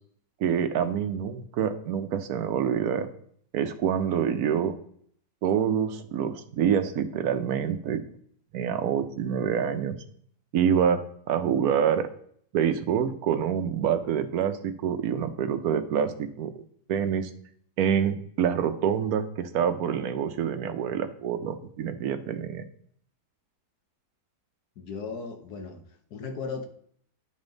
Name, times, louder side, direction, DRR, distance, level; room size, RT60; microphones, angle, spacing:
voice 1, 0.4-3.1 3.5-4.7 5.4-8.0 8.5-10.0 10.5-12.1 12.5-16.6 16.9-17.3 17.8-22.6, right 8 dB, 70° right, 1.1 m, -26 dB
voice 2, 24.8-25.8 26.1-26.7, left 5 dB, 70° left, 1.4 m, -36 dB
10.5 x 5.4 x 3.9 m
omnidirectional pair, 1.8 m